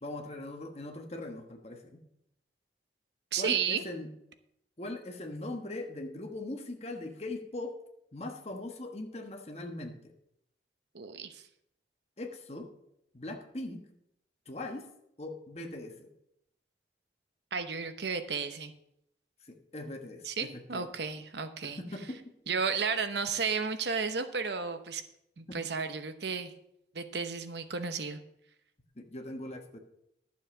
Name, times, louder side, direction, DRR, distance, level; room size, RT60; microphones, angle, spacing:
voice 1, 0.0-2.0 3.4-4.1 4.8-7.8 8.1-9.9 12.2-12.7 13.1-13.8 14.5-14.9 15.2-16.1 19.4-20.9 21.6-22.2 25.5-25.6 29.0-29.8, left 2 dB, 35° left, 4 dB, 1.4 m, -40 dB
voice 2, 3.3-3.8 10.9-11.4 17.5-18.7 20.3-21.8 22.5-25.0 25.4-26.5 26.9-28.2, right 5 dB, 75° right, 9 dB, 0.9 m, -33 dB
11.5 x 7.3 x 6.0 m, 0.77 s
head